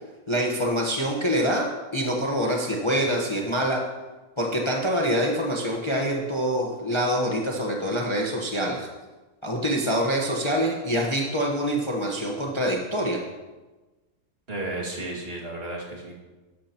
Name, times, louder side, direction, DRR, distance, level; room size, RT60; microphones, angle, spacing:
voice 1, 0.3-3.8 4.4-8.9 9.4-13.2, equal, 20° left, -1 dB, 1.1 m, -25 dB
voice 2, 14.5-16.2, right 2 dB, 40° right, -3 dB, 2.5 m, -33 dB
12.0 x 12.0 x 3.0 m, 1.2 s
omnidirectional pair, 1.5 m